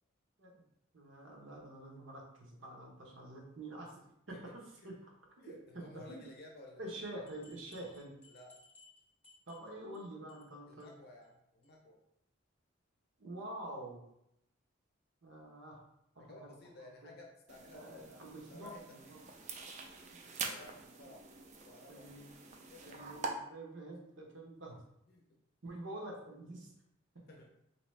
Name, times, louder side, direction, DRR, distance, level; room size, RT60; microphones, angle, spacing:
voice 1, 0.9-5.1 5.4-6.2 6.8-8.1 9.5-10.9 13.2-14.0 15.2-15.8 16.1-16.5 17.0-17.1 17.7-19.2 20.1-20.3 21.9-22.3 22.9-24.8 25.6-26.7, right 1 dB, 80° right, -1 dB, 1.0 m, -47 dB
voice 2, 5.4-7.1 8.3-8.5 10.7-12.0 16.2-18.2 18.5-19.3 20.4-21.3 21.6-22.1 22.7-23.1 25.1-25.8 27.3-27.5, left 2 dB, 55° left, 0 dB, 0.6 m, -55 dB
sound 1, 7.3-10.0 10.3-10.5 10.8-10.9 11.2-11.3 11.6-11.7, left 3 dB, 5° left, 0.9 m, -62 dB
sound 2, 17.5-23.3, right 4 dB, 40° right, 0.4 m, -45 dB
3.5 x 2.9 x 3.2 m, 0.79 s
head